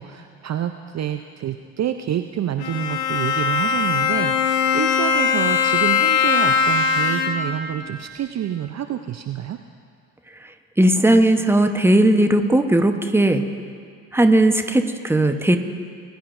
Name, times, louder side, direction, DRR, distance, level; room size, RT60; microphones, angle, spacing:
voice 1, 0.0-9.6, right 10 dB, 35° right, 7 dB, 0.6 m, -28 dB
Bowed string instrument, 2.6-7.6, left 6 dB, 55° left, 1.3 m, -20 dB
voice 2, 10.8-13.4 14.1-15.6, right 1 dB, 5° right, 7 dB, 1.0 m, -17 dB
21.5 x 11.5 x 2.6 m, 2.1 s
hypercardioid pair, 50°, 45 cm